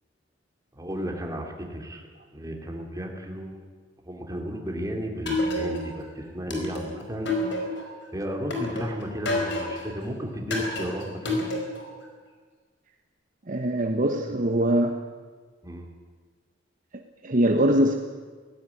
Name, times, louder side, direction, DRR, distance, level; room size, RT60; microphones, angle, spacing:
voice 1, 0.7-2.0 2.3-3.6 4.0-7.3 8.1-11.4 15.6-15.9, equal, 20° right, 2 dB, 3.1 m, -33 dB
sound 1, 5.3-6.0 6.5-8.0 8.5-9.9 10.5-11.9, left 2 dB, 65° left, 4.8 m, -29 dB
voice 2, 13.5-15.0 16.9-18.0, right 1 dB, 45° right, 5 dB, 1.1 m, -23 dB
17.5 x 15.5 x 10.0 m, 1.5 s
head